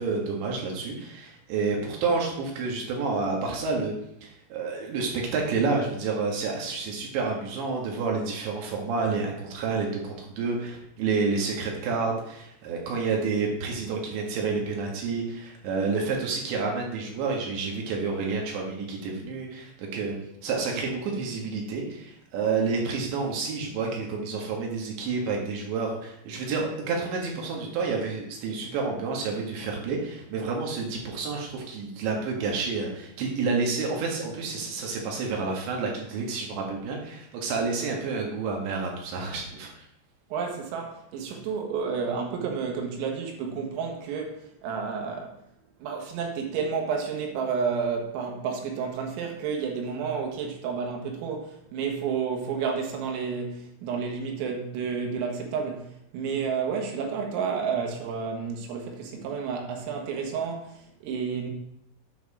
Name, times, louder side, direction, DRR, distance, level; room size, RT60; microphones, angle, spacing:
voice 1, 0.0-3.9 4.2-20.2 20.4-39.9, right 4 dB, 65° right, 3.8 m, -29 dB
voice 2, 40.3-45.4 45.8-61.5, right 6 dB, 90° right, 4.1 m, -31 dB
9.2 x 4.8 x 6.1 m
omnidirectional pair, 5.8 m